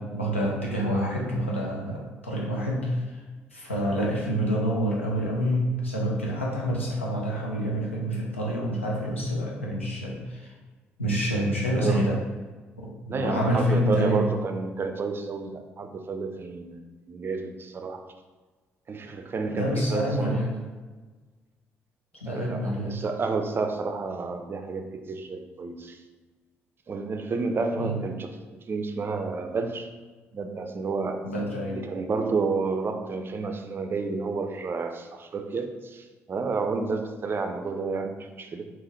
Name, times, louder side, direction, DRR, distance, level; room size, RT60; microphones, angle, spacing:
voice 1, 0.0-3.2 3.5-10.5 11.0-12.1 12.8-14.3 19.5-20.6 22.1-23.0 27.7-28.0 31.2-31.8, equal, 85° left, -3 dB, 0.5 m, -27 dB
voice 2, 11.8-12.2 13.1-16.8 17.1-18.1 18.9-20.4 22.3-26.0 26.9-28.3 28.7-29.9 30.3-31.2 31.7-38.7, right 4 dB, 35° right, 6 dB, 0.4 m, -30 dB
3.7 x 2.9 x 3.0 m, 1.3 s
figure-of-eight pair, 45°, 7 cm